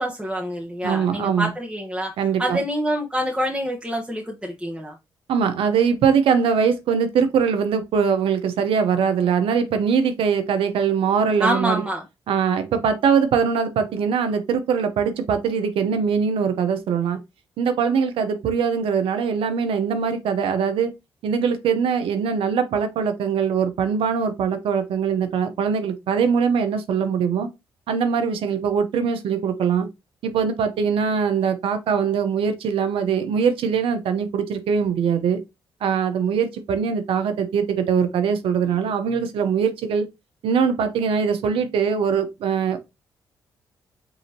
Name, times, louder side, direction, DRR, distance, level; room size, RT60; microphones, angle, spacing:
voice 1, 0.0-2.1 2.4-5.0 11.4-12.0, equal, 10° right, 1.1 m, -26 dB
voice 2, 0.8-1.5 2.2-2.6 5.3-11.8 12.3-17.2 17.6-20.9 21.2-27.5 27.9-29.9 30.2-35.4 35.8-40.1 40.4-42.8, right 6 dB, 70° right, 0.8 m, -22 dB
5.5 x 2.8 x 2.8 m
hypercardioid pair, 50°, 9 cm